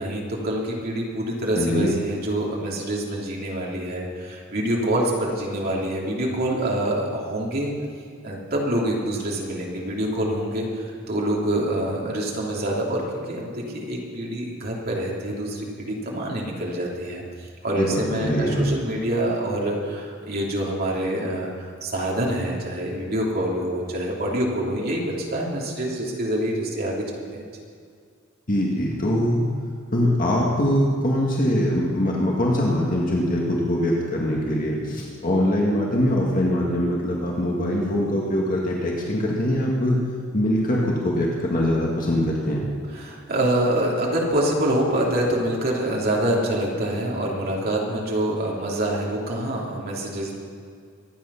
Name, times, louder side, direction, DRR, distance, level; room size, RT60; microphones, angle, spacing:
voice 1, 0.0-7.7 8.2-27.6 42.9-50.4, right 1 dB, 50° right, -3 dB, 3.2 m, -26 dB
voice 2, 1.6-1.9 17.8-18.6 28.5-29.4 29.9-40.0 40.3-42.7, left 1 dB, 45° left, -3 dB, 1.9 m, -22 dB
23.5 x 9.4 x 5.8 m, 2.2 s
head